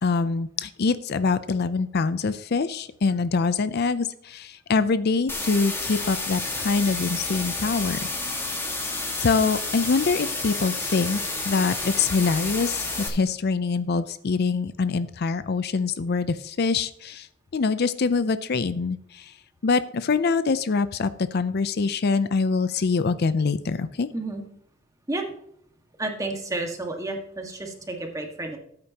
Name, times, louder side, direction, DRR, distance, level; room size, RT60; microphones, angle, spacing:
voice 1, 0.0-8.0 9.2-17.3 17.5-19.3 19.6-24.1, left 4 dB, 55° left, 13 dB, 0.5 m, -24 dB
sound 1, 5.3-13.1, left 2 dB, 10° left, 1.7 m, -30 dB
voice 2, 24.1-24.4 25.1-25.2 26.0-28.6, right 2 dB, 15° right, 3 dB, 1.7 m, -31 dB
13.5 x 8.6 x 2.9 m, 0.68 s
head